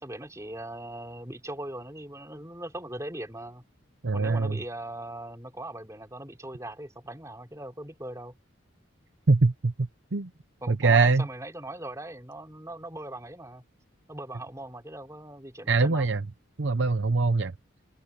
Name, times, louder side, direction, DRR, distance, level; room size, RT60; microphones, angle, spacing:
voice 1, 0.0-3.6 4.1-8.3 10.6-13.6 14.1-16.1, right 1 dB, 15° right, 4.3 m, -40 dB
voice 2, 4.0-4.6 9.3-9.7 10.1-10.3 10.7-11.2 15.7-16.2 16.6-17.5, right 3 dB, 60° right, 0.7 m, -22 dB
open air
head